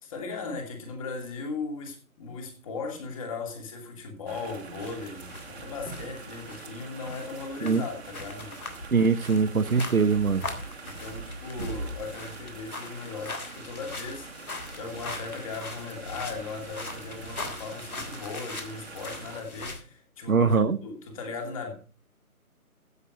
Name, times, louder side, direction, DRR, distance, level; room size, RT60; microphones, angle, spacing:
voice 1, 0.0-8.6 10.8-21.8, left 4 dB, 20° left, 2.6 m, -38 dB
sound 1, 4.3-19.4, right 3 dB, 45° right, 2.0 m, -44 dB
sound 2, 4.8-19.8, left 2 dB, 70° left, 3.5 m, -41 dB
voice 2, 8.9-10.5 20.3-20.8, right 5 dB, 70° right, 1.2 m, -22 dB
15.5 x 7.2 x 4.2 m
figure-of-eight pair, 155°, 44 cm